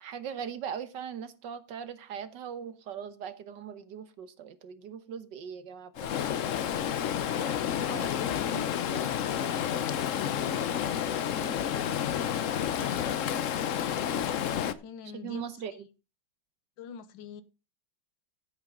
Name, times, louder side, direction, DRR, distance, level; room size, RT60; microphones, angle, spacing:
voice 1, 0.0-6.2 7.9-8.1 15.1-15.9, right 8 dB, 70° right, 1.6 m, -40 dB
Stream, 6.0-14.7, left 9 dB, 60° left, 0.8 m, -30 dB
voice 2, 7.0-9.2 9.6-10.6 11.0-11.9 14.5-15.4 16.8-17.4, left 6 dB, 75° left, 1.7 m, -43 dB
15.0 x 8.4 x 3.8 m
omnidirectional pair, 2.1 m